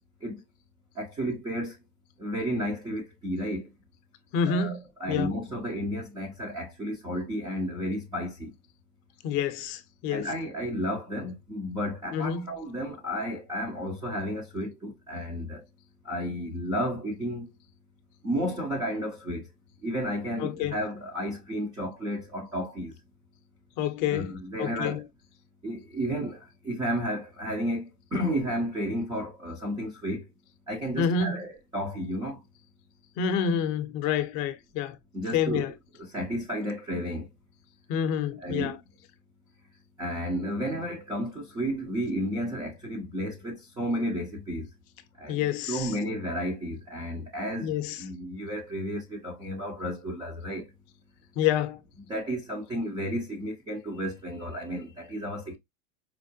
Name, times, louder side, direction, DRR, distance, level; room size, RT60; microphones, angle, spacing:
voice 1, 1.0-1.8 2.2-3.7 4.5-8.5 10.1-15.6 16.0-17.5 18.2-19.5 19.8-22.9 24.1-25.0 25.6-30.3 30.7-32.4 35.1-35.6 36.0-37.3 38.4-38.8 40.0-44.7 45.2-50.7 52.1-55.6, equal, 10° right, 0.3 m, -32 dB
voice 2, 4.3-5.3 9.2-10.3 12.1-12.6 20.4-20.8 23.8-24.3 24.6-25.0 31.0-31.4 33.2-35.0 35.3-35.7 37.9-38.8 45.3-45.9 47.6-48.0 51.4-51.8, left 7 dB, 40° left, 0.5 m, -28 dB
4.5 x 2.1 x 2.5 m
hypercardioid pair, 115°, 47 cm